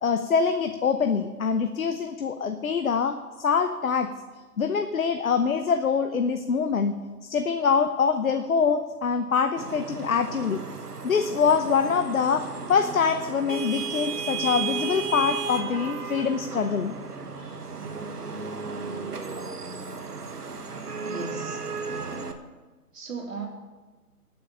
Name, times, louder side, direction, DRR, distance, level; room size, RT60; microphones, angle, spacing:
voice 1, 0.0-4.1 4.6-7.0 7.2-10.6 11.0-16.9 17.4-17.6, left 6 dB, 60° left, 8 dB, 0.9 m, -24 dB
Vehicle horn car horn honking / Traffic noise roadway noise, 9.6-22.3, right 5 dB, 75° right, 1.5 m, -34 dB
voice 2, 21.1-21.6 22.9-23.5, right 4 dB, 55° right, 0 dB, 3.6 m, -35 dB
19.5 x 7.7 x 5.6 m, 1.3 s
figure-of-eight pair, 145°, 47 cm